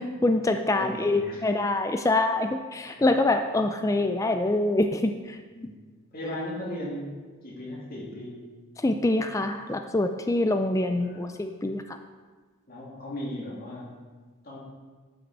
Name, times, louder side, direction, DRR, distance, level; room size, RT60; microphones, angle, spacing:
voice 1, 0.0-5.4 8.8-12.0, left 2 dB, 15° left, 6 dB, 0.3 m, -25 dB
voice 2, 0.7-1.5 2.9-3.0 5.5-5.7 6.1-7.1 7.4-8.5 11.0-11.3 12.7-14.0 14.4-14.6, left 1 dB, 40° left, -5 dB, 2.4 m, -37 dB
11.5 x 5.9 x 4.6 m, 1.4 s
head